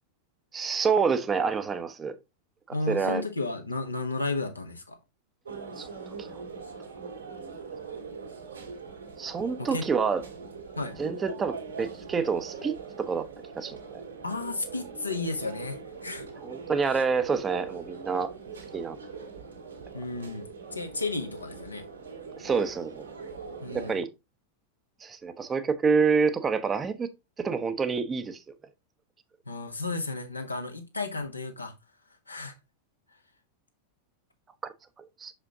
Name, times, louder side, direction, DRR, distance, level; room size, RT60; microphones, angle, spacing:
voice 1, 0.5-2.1 2.9-3.2 5.8-5.9 6.2-6.3 9.2-10.2 11.0-13.3 13.6-14.0 16.4-18.3 18.7-19.3 22.4-23.1 23.7-24.1 25.0-27.1 27.4-28.4 35.0-35.3, right 5 dB, 20° right, 0.8 m, -27 dB
voice 2, 2.7-5.0 9.6-9.9 10.8-10.9 14.2-16.3 16.9-17.0 19.9-21.8 23.6-24.0 29.5-31.7 32.3-32.5, left 3 dB, 80° left, 1.3 m, -33 dB
sound 1, 5.4-23.9, right 5 dB, 75° right, 2.3 m, -42 dB
6.2 x 5.3 x 3.7 m
figure-of-eight pair, 90°, 0 cm